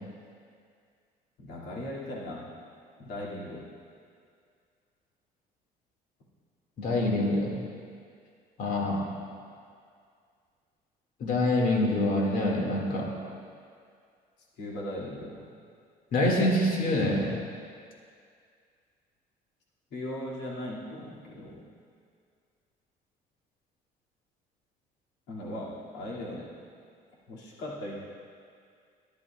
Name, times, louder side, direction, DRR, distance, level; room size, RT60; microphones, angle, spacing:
voice 1, 1.4-2.5 3.0-3.7 8.7-9.2 14.6-15.4 19.9-21.6 25.3-26.5 27.3-28.0, left 1 dB, 90° left, -5 dB, 2.4 m, -38 dB
voice 2, 6.8-7.5 8.6-9.0 11.2-13.1 16.1-17.3, left 1 dB, 55° left, -2 dB, 2.1 m, -25 dB
14.5 x 11.5 x 2.4 m, 2.2 s
cardioid pair, 110°, 17 cm